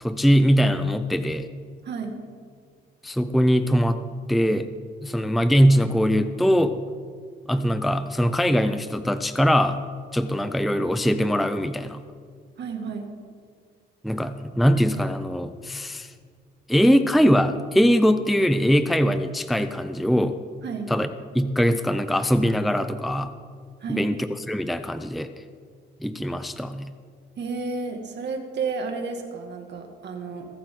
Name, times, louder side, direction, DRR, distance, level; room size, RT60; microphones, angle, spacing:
voice 1, 0.0-1.5 3.0-4.0 4.3-4.7 5.0-6.8 7.5-9.8 10.1-12.0 14.0-16.1 16.7-20.4 20.9-21.1 21.3-23.3 23.9-25.3 26.0-26.9, equal, ahead, 10 dB, 0.5 m, -21 dB
voice 2, 1.8-2.1 12.6-13.1 20.6-20.9 23.8-24.1 27.4-30.5, right 4 dB, 60° right, 3 dB, 2.2 m, -31 dB
22.5 x 8.6 x 3.9 m, 2.1 s
cardioid pair, 90°, 20 cm